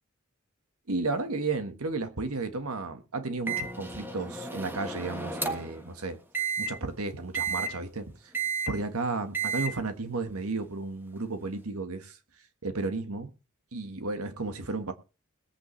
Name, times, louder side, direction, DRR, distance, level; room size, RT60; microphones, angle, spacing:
voice 1, 0.9-6.2 6.6-8.3 8.7-12.2 12.6-13.3 13.7-14.9, right 3 dB, 85° right, 1.5 m, -33 dB
Microwave oven, 3.5-5.8 6.3-6.7 7.3-7.7 8.3-8.7 9.3-9.7, right 4 dB, 10° right, 1.3 m, -32 dB
21.0 x 8.4 x 3.3 m
head